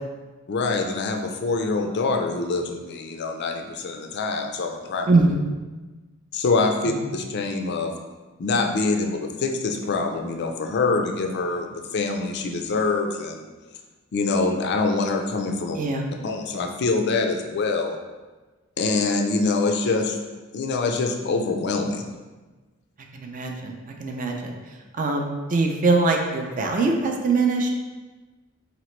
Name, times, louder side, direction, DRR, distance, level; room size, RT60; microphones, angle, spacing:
voice 1, 0.5-5.1 6.3-7.9 8.4-13.4 14.1-15.8 16.2-18.0 18.8-20.2 20.5-22.2, left 3 dB, 50° left, 4 dB, 0.4 m, -25 dB
voice 2, 5.1-5.4 6.8-7.2 15.8-16.1 23.1-24.5 24.9-27.7, right 3 dB, 40° right, 2 dB, 0.4 m, -23 dB
4.1 x 2.9 x 3.1 m, 1.3 s
head